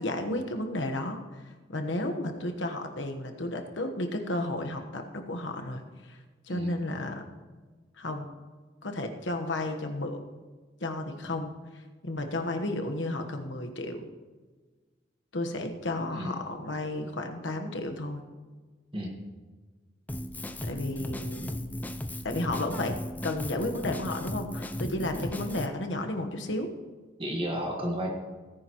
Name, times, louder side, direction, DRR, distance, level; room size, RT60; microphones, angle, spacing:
voice 1, 0.0-6.2 6.4-7.3 8.0-8.3 8.8-10.3 10.8-14.1 15.3-18.2 20.6-21.6 22.2-23.0 23.2-26.7, left 1 dB, 75° left, 5 dB, 1.2 m, -33 dB
Drum kit, 20.1-25.7, left 1 dB, 10° left, 0.5 m, -36 dB
voice 2, 27.2-28.1, equal, 30° right, 0 dB, 1.6 m, -32 dB
18.5 x 10.0 x 3.0 m, 1.4 s
head